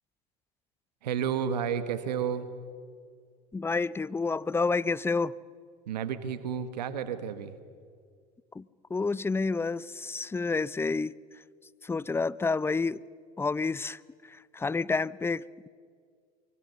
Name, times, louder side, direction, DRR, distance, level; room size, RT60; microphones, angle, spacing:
voice 1, 1.0-2.5 5.9-7.5, right 8 dB, 85° right, 1.4 m, -31 dB
voice 2, 3.5-5.3 8.5-8.6 8.9-11.1 11.8-13.0 13.4-15.7, left 4 dB, 10° left, 0.5 m, -29 dB
24.5 x 24.0 x 6.9 m
hypercardioid pair, 85°, 21 cm